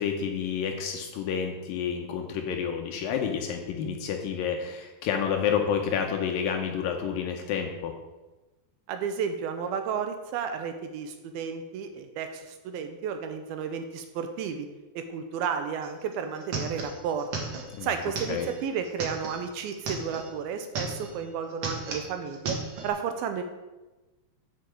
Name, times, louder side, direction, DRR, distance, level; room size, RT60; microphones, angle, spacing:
voice 1, 0.0-7.9 17.7-17.9 18.3-18.5, left 7 dB, 75° left, 4 dB, 2.2 m, -29 dB
voice 2, 8.9-14.7 15.0-17.3 17.8-22.6 22.8-23.4, right 7 dB, 80° right, 7 dB, 2.4 m, -32 dB
sound 1, 15.8-20.3 20.6-21.2 21.5-22.9, right 4 dB, 55° right, 1.9 m, -35 dB
8.5 x 5.3 x 7.5 m, 1.1 s
omnidirectional pair, 4.6 m